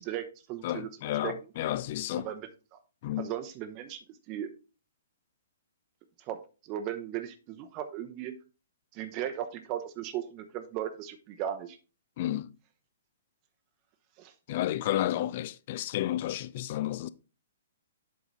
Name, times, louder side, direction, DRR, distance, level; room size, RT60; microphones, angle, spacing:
voice 1, 0.0-0.9 1.2-1.3 2.2-2.8 3.2-4.0 4.3-4.5 6.3-8.3 8.9-11.8 14.2-14.3, right 11 dB, 35° right, 0.8 m, -37 dB
voice 2, 0.6-2.3 3.0-3.3 12.2-12.5 14.5-17.1, left 13 dB, 45° left, 0.5 m, -31 dB
8.0 x 5.0 x 4.0 m
figure-of-eight pair, 120°, 0 cm